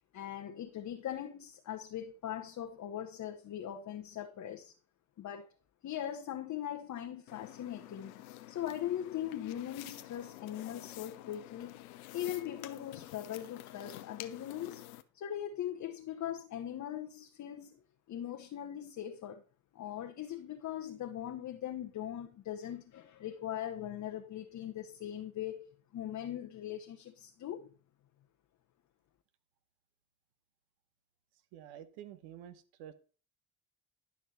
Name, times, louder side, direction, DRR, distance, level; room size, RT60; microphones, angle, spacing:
voice 1, 0.1-4.7 5.2-5.5 5.8-8.2 8.5-11.8 12.1-14.9 15.1-17.8 18.1-19.4 19.7-25.7 25.9-27.7, left 11 dB, 45° left, 1.0 m, -40 dB
sound 1, 7.3-15.0, left 15 dB, 75° left, 0.7 m, -49 dB
voice 2, 31.5-32.9, right 10 dB, 65° right, 1.1 m, -49 dB
11.0 x 6.0 x 4.1 m
hypercardioid pair, 55°, 42 cm